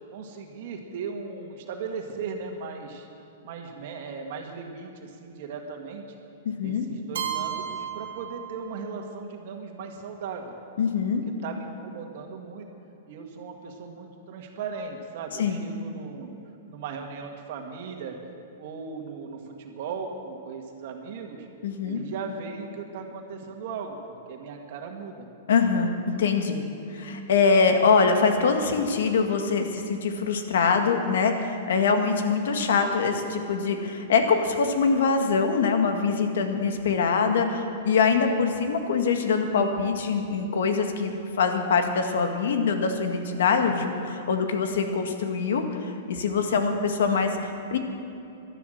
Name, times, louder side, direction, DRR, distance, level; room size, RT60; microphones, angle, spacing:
voice 1, 0.1-3.1 3.4-6.0 6.6-10.5 11.4-12.7 13.1-16.3 16.7-18.2 18.6-21.5 21.8-25.3 43.6-43.9, right 5 dB, 55° right, 2 dB, 1.9 m, -37 dB
voice 2, 6.5-6.9 10.8-11.2 15.4-15.6 21.6-22.0 25.5-26.6 26.9-47.8, left 5 dB, 80° left, 5 dB, 1.8 m, -24 dB
Keyboard (musical), 7.1-9.1, right 9 dB, 90° right, 1.7 m, -34 dB
15.0 x 12.0 x 6.6 m, 2.8 s
hypercardioid pair, 150°, 0 cm